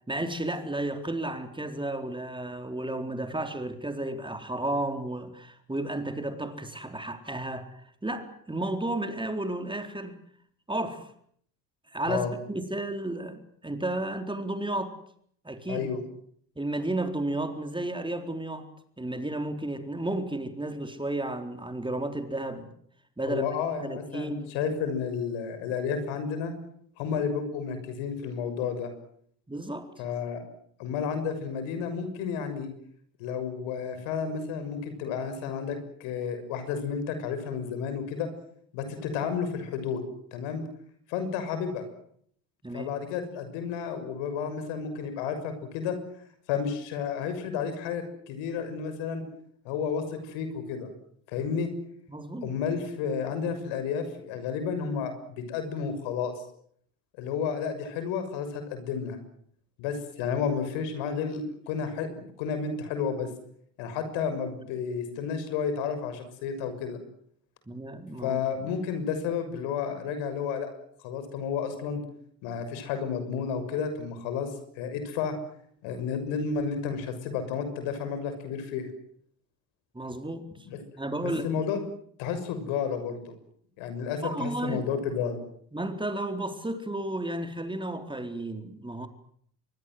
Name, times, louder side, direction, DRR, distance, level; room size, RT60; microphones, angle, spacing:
voice 1, 0.1-10.2 10.7-11.1 11.9-14.9 15.4-15.9 16.6-18.7 19.0-22.7 23.2-23.5 23.8-24.4 24.6-24.7 27.1-27.2 29.5-29.9 42.6-42.9 52.1-52.5 67.7-68.4 79.9-80.5 81.0-81.5 84.2-84.8 85.7-89.1, right 1 dB, 10° right, 6 dB, 4.1 m, -33 dB
voice 2, 15.7-16.0 23.3-26.5 27.0-28.9 30.0-30.4 30.8-32.7 33.2-38.3 38.7-40.0 40.3-40.6 41.1-41.8 42.7-46.0 46.5-49.2 49.6-50.9 51.3-51.7 52.4-56.4 57.2-59.2 59.8-62.1 62.4-63.3 63.8-67.0 68.2-70.7 71.0-72.0 72.4-74.5 74.8-75.3 75.8-78.9 80.7-80.8 81.2-81.8 82.2-83.3 83.8-85.4, left 6 dB, 65° left, 9 dB, 6.6 m, -31 dB
26.5 x 23.5 x 7.8 m, 0.66 s
hypercardioid pair, 70°, 49 cm